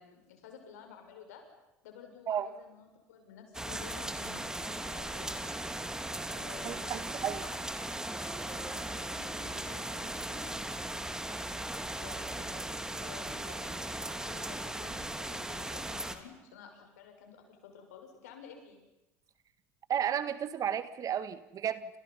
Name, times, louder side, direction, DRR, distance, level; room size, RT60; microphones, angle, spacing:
voice 1, 0.0-1.4 1.8-5.3 6.3-7.9 8.5-10.5 12.0-12.6 13.0-18.8, left 6 dB, 75° left, 4 dB, 6.5 m, -52 dB
sound 1, 3.5-16.2, right 1 dB, 5° right, 2.8 m, -38 dB
voice 2, 6.6-7.4 19.9-22.0, right 9 dB, 45° right, 13 dB, 1.9 m, -33 dB
29.5 x 28.0 x 5.7 m, 0.95 s
hypercardioid pair, 70°, 9 cm